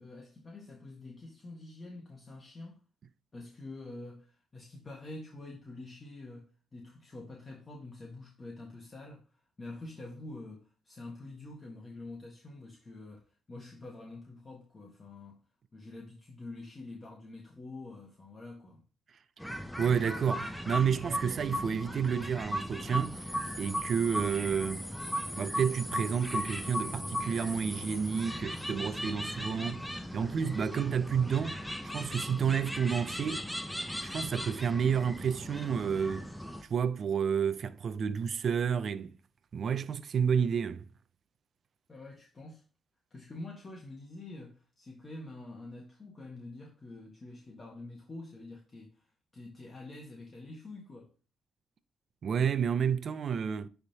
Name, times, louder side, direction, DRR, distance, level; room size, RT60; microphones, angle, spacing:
voice 1, 0.0-2.8 3.3-15.4 15.7-18.8 41.9-42.6 43.1-51.1, left 2 dB, 30° left, 1.4 m, -47 dB
sound 1, 19.4-36.6, equal, ahead, 0.8 m, -37 dB
voice 2, 19.8-23.3 23.6-24.9 25.4-31.6 31.9-33.5 34.0-36.3 36.7-39.1 39.5-40.9 52.2-53.7, right 7 dB, 50° right, 0.5 m, -30 dB
9.6 x 3.6 x 2.8 m
cardioid pair, 90°, 0 cm